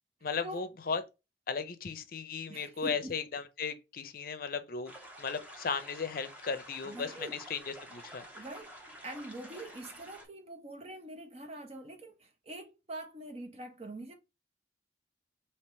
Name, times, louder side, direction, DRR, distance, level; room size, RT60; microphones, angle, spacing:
voice 1, 0.2-1.0 1.5-4.9 5.2-8.3, left 5 dB, 55° left, 0.6 m, -36 dB
voice 2, 2.5-3.2 6.8-7.4 8.3-8.7 9.0-14.1, right 1 dB, 35° right, 0.9 m, -44 dB
sound 1, 4.9-10.3, equal, 10° right, 0.9 m, -50 dB
3.5 x 2.9 x 4.3 m
head